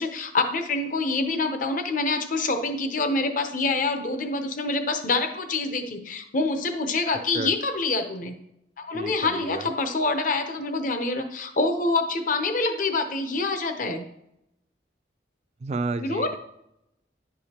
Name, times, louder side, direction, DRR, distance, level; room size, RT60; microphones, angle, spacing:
voice 1, 0.0-8.3 8.8-14.0 16.0-16.3, left 3 dB, 50° left, 7 dB, 0.7 m, -26 dB
voice 2, 8.9-9.7 15.6-16.4, right 3 dB, 40° right, 11 dB, 0.4 m, -31 dB
10.5 x 4.9 x 2.9 m, 0.81 s
head